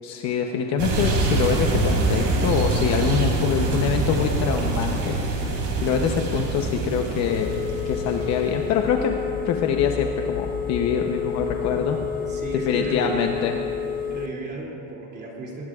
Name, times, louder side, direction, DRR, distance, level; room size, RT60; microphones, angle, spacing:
voice 1, 0.0-5.5 5.8-7.5 7.9-9.2 9.4-12.0 12.7-13.6, left 7 dB, 45° left, 3 dB, 0.9 m, -25 dB
sound 1, 0.8-8.7, right 2 dB, 45° right, 3.0 m, -25 dB
Telephone, 7.3-14.3, left 8 dB, 25° left, 0.4 m, -30 dB
voice 2, 12.3-13.4 14.0-15.7, right 3 dB, 25° right, -2 dB, 2.7 m, -34 dB
22.0 x 19.5 x 2.4 m, 2.9 s
cardioid pair, 165°, 37 cm